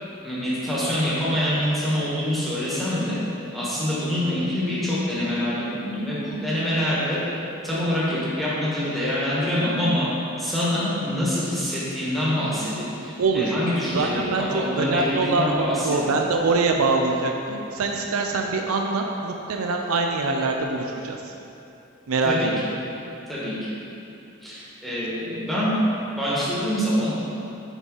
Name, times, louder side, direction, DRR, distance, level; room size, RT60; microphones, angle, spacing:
voice 1, 0.2-3.2 3.5-7.2 7.6-10.1 10.4-15.9 22.2-22.5 23.3-23.5 24.4-25.8 26.2-27.1, left 1 dB, ahead, -10 dB, 1.4 m, -25 dB
voice 2, 13.2-13.5 13.9-21.3 22.1-22.3, right 3 dB, 80° right, 2 dB, 0.5 m, -24 dB
6.0 x 5.4 x 3.9 m, 2.8 s
head